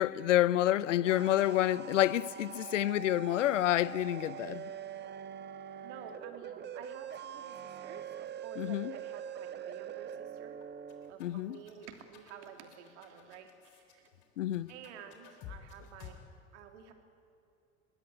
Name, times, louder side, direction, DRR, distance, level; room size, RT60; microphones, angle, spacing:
voice 1, 0.0-4.7 8.6-8.9 11.2-11.6 14.4-14.7, left 13 dB, 70° left, 0.8 m, -28 dB
sound 1, 0.7-11.1, right 9 dB, 25° right, 1.3 m, -44 dB
voice 2, 5.8-10.6 11.1-14.1 14.7-16.2 16.5-16.9, right 8 dB, 65° right, 3.0 m, -51 dB
sound 2, 10.6-16.1, left 9 dB, 50° left, 3.9 m, -53 dB
23.5 x 21.0 x 9.8 m
figure-of-eight pair, 75°, 38 cm